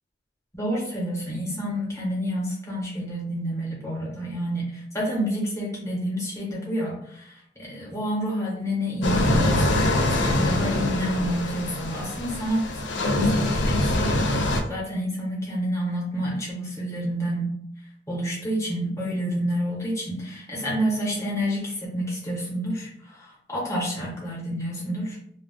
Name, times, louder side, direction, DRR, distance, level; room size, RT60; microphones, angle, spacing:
voice 1, 0.5-12.7 13.1-17.5 18.1-25.2, equal, 15° left, -5 dB, 1.0 m, -29 dB
sound 1, 9.0-14.6, left 1 dB, 75° left, 0.4 m, -24 dB
2.3 x 2.3 x 3.6 m, 0.68 s
head